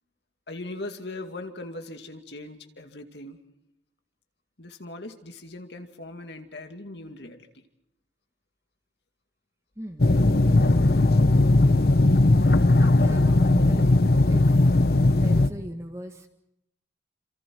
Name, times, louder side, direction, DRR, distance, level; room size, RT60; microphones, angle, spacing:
voice 1, 0.5-3.4 4.6-7.5, left 2 dB, 70° left, 5 dB, 2.3 m, -39 dB
voice 2, 9.8-10.2 12.8-13.9 14.3-14.5 15.1-16.3, equal, 15° right, 5 dB, 1.6 m, -39 dB
sound 1, 10.0-15.5, left 2 dB, 55° left, 0.8 m, -18 dB
28.5 x 27.0 x 4.6 m, 0.79 s
head